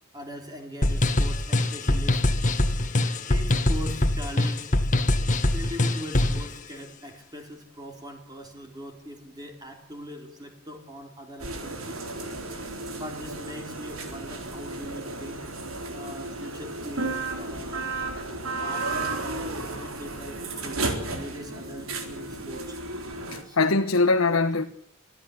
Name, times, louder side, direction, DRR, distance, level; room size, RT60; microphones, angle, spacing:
voice 1, 0.1-2.2 3.3-4.7 5.5-12.0 12.9-15.5 15.9-17.9 18.6-22.8 23.4-23.6, equal, 20° right, 4.0 m, -41 dB
sound 1, 0.8-6.5, left 1 dB, 35° left, 1.8 m, -23 dB
sound 2, 11.4-23.4, right 2 dB, 85° right, 4.0 m, -33 dB
voice 2, 23.3-24.7, left 3 dB, 85° left, 1.3 m, -22 dB
24.5 x 14.5 x 9.9 m
head